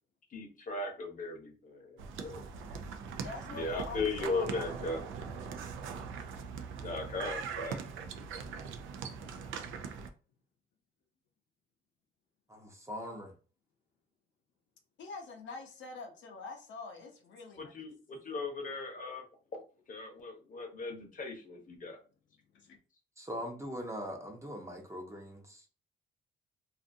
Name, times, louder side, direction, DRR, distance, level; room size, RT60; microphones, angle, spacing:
voice 1, 0.3-2.5 3.5-5.0 6.8-7.8 17.6-19.3 19.5-19.6 19.9-22.0, left 3 dB, 40° left, 3 dB, 0.8 m, -37 dB
sound 1, 2.0-10.1, right 6 dB, 80° right, 0.4 m, -41 dB
voice 2, 3.1-4.0 4.3-4.5 4.8-4.9 15.0-17.8 22.5-22.8, left 3 dB, 70° left, 3 dB, 0.7 m, -46 dB
voice 3, 12.5-13.3 23.2-25.6, equal, 15° right, 2 dB, 0.7 m, -41 dB
2.4 x 2.4 x 2.5 m, 0.36 s
cardioid pair, 90°, 20 cm